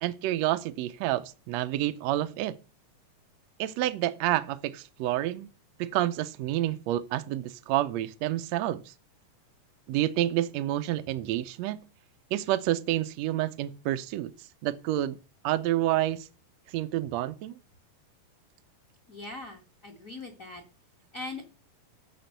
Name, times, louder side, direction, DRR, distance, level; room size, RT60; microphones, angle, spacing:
voice 1, 0.0-2.6 3.6-5.5 5.8-8.9 9.9-11.8 12.3-14.3 14.6-15.2 15.4-16.3 16.7-17.6, right 14 dB, 75° right, 1.7 m, -29 dB
voice 2, 19.1-20.6 21.1-21.4, left 2 dB, 35° left, 1.5 m, -40 dB
14.5 x 5.2 x 6.7 m
omnidirectional pair, 3.7 m